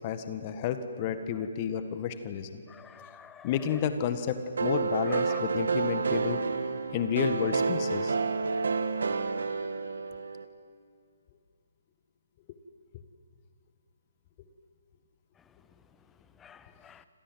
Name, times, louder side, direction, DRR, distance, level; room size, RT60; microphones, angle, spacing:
voice 1, 0.0-2.6 3.4-6.4 6.9-8.1 12.5-12.6, left 8 dB, 30° left, 9 dB, 1.6 m, -31 dB
voice 2, 2.7-3.8 5.1-5.4 16.4-17.0, left 7 dB, 10° left, 13 dB, 1.1 m, -48 dB
sound 1, 4.6-10.5, right 4 dB, 60° right, 1.6 m, -29 dB
28.0 x 26.5 x 7.8 m, 2.4 s
figure-of-eight pair, 135°, 0 cm